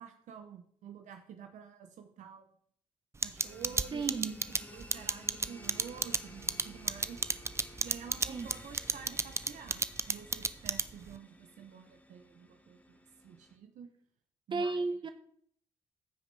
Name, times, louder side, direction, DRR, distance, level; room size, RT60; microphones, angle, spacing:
voice 1, 0.0-2.5 3.2-4.4 4.7-7.3 7.8-13.0 13.2-13.9 14.5-14.8, right 7 dB, 70° right, 6 dB, 0.8 m, -49 dB
sound 1, 3.2-11.1, right 3 dB, 20° right, 0.5 m, -31 dB
sound 2, 3.4-13.6, left 1 dB, 10° left, 1.3 m, -54 dB
voice 2, 3.9-4.3 8.3-8.5 14.5-15.1, right 3 dB, 40° right, 9 dB, 1.1 m, -33 dB
15.0 x 5.1 x 3.4 m, 0.62 s
supercardioid pair, 65°, 13 cm